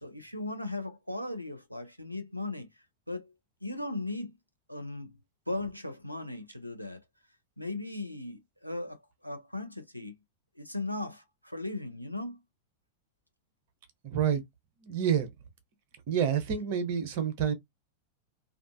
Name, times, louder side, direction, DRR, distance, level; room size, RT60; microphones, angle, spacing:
voice 1, 0.0-2.7 3.1-3.3 3.6-4.3 4.7-5.2 5.5-7.0 7.6-10.1 10.6-12.4, left 2 dB, 90° left, 0.5 m, -37 dB
voice 2, 14.0-14.4 14.8-15.3 16.1-17.5, right 8 dB, 50° right, 0.7 m, -28 dB
2.4 x 2.3 x 2.5 m
figure-of-eight pair, 90°, 0 cm